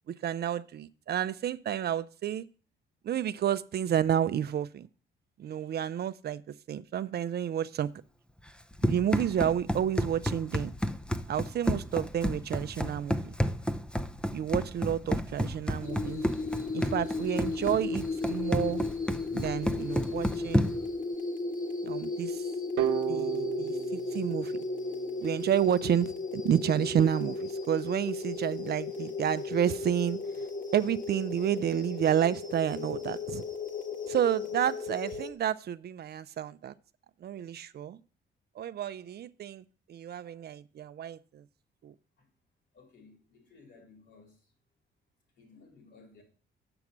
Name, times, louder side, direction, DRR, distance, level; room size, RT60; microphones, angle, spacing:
voice 1, 0.1-2.5 3.0-4.9 5.4-7.9 8.8-10.7 11.3-13.4 14.3-16.2 16.7-18.8 19.3-20.7 21.8-22.5 23.1-24.6 25.2-30.5 30.7-33.4 34.1-36.7 37.2-38.0 38.6-41.4 41.8-41.9, right 10 dB, 55° right, 0.5 m, -30 dB
Run, 8.5-20.9, equal, 5° left, 0.6 m, -31 dB
sound 1, 15.8-35.3, left 3 dB, 40° left, 1.6 m, -35 dB
sound 2, 22.8-25.6, right 11 dB, 85° right, 0.8 m, -33 dB
voice 2, 42.7-44.5 45.4-46.2, left 4 dB, 70° left, 3.9 m, -57 dB
7.8 x 5.9 x 7.2 m
cardioid pair, 90°, 20 cm